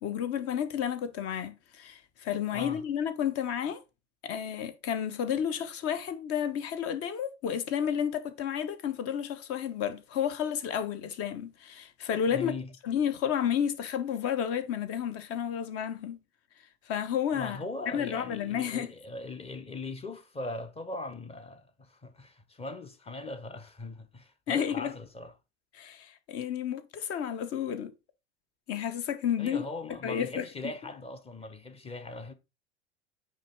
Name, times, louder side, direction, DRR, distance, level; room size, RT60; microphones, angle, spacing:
voice 1, 0.0-3.8 4.2-12.5 12.8-16.2 16.9-17.6 17.9-18.9 24.5-24.9 25.7-27.9 28.7-29.7 30.0-30.5, left 9 dB, 40° left, 1.2 m, -31 dB
voice 2, 2.5-2.8 12.3-12.7 17.3-25.3 29.4-32.3, left 2 dB, 15° left, 1.1 m, -40 dB
8.9 x 3.6 x 4.5 m
figure-of-eight pair, 80°, 35 cm